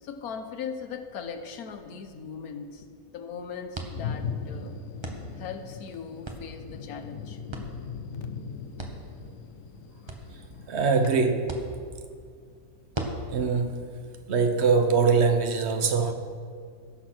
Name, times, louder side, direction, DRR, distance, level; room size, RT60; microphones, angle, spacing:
voice 1, 0.0-4.8 5.4-7.4, left 6 dB, 85° left, 1.4 m, -39 dB
sound 1, 1.9-15.2, right 2 dB, 25° right, 0.9 m, -43 dB
Thunder, 3.9-11.2, left 6 dB, 70° left, 1.1 m, -39 dB
voice 2, 10.7-11.6 13.3-13.9 14.3-16.1, right 5 dB, 50° right, 1.1 m, -23 dB
16.0 x 6.4 x 6.1 m
omnidirectional pair, 1.5 m